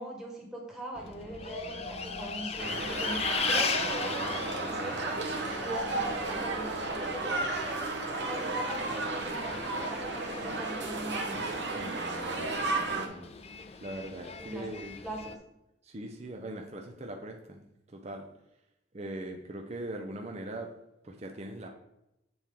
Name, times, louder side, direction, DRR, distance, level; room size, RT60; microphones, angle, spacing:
voice 1, 0.0-5.2 5.6-7.8 8.2-11.6 14.4-14.7 15.0-15.3, right 1 dB, 5° right, -2 dB, 1.4 m, -41 dB
Bus, 0.9-15.4, left 6 dB, 35° left, 0.5 m, -39 dB
sound 1, 1.4-8.1, left 2 dB, 70° left, 1.0 m, -47 dB
sound 2, 2.6-13.1, right 3 dB, 65° right, 1.0 m, -33 dB
voice 2, 11.7-13.3 13.8-15.0 15.8-18.3 18.9-20.7 21.0-21.7, right 1 dB, 35° right, 2 dB, 0.6 m, -41 dB
7.8 x 4.3 x 3.6 m, 0.87 s
head